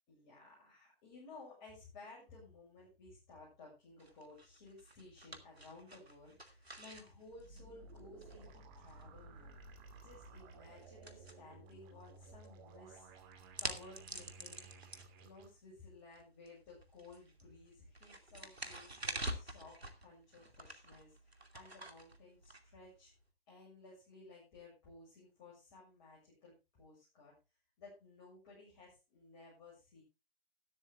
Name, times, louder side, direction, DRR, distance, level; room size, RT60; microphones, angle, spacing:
voice 1, 0.1-13.1 13.6-14.6 15.2-21.1 21.5-23.1 23.5-27.3 27.8-30.0, left 3 dB, 25° left, -5 dB, 7.2 m, -57 dB
sound 1, 4.0-23.2, right 1 dB, 90° right, 2.7 m, -49 dB
sound 2, 7.3-15.5, right 3 dB, 20° right, 2.5 m, -57 dB
13.0 x 12.5 x 3.5 m, 0.28 s
figure-of-eight pair, 140°, 31 cm